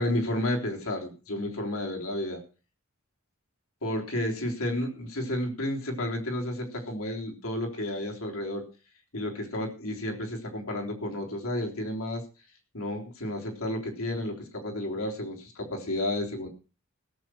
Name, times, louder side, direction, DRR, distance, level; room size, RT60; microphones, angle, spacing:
voice 1, 0.0-2.4 3.8-8.7 9.1-12.2 12.7-16.5, left 1 dB, 90° left, 2 dB, 3.7 m, -31 dB
17.0 x 7.8 x 5.9 m, 0.34 s
head